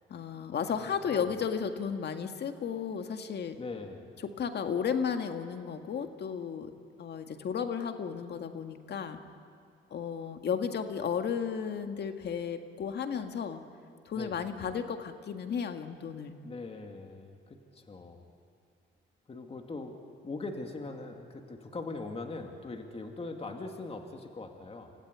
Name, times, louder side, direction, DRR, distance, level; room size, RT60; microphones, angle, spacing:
voice 1, 0.1-3.6 4.2-6.7 7.0-9.2 9.9-13.6 14.1-16.3, left 7 dB, 60° left, 6 dB, 1.8 m, -34 dB
voice 2, 0.8-1.3 3.6-4.1 14.1-14.4 16.4-18.3 19.3-20.0 20.2-24.9, left 3 dB, 30° left, 4 dB, 2.4 m, -41 dB
27.5 x 15.5 x 9.4 m, 2.3 s
cardioid pair, 90°, 20 cm